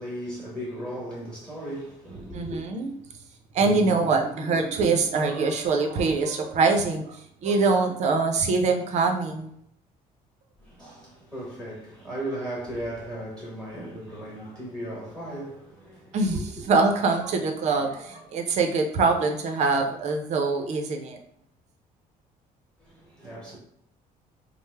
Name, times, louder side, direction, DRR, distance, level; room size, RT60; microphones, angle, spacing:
voice 1, 0.0-2.6 10.6-16.4 22.8-23.6, right 1 dB, 5° left, 1.1 m, -36 dB
voice 2, 2.3-2.9 3.5-9.5 16.1-16.4 16.7-21.2, right 4 dB, 50° right, 0.5 m, -24 dB
3.1 x 2.0 x 3.2 m
cardioid pair, 155°, 15 cm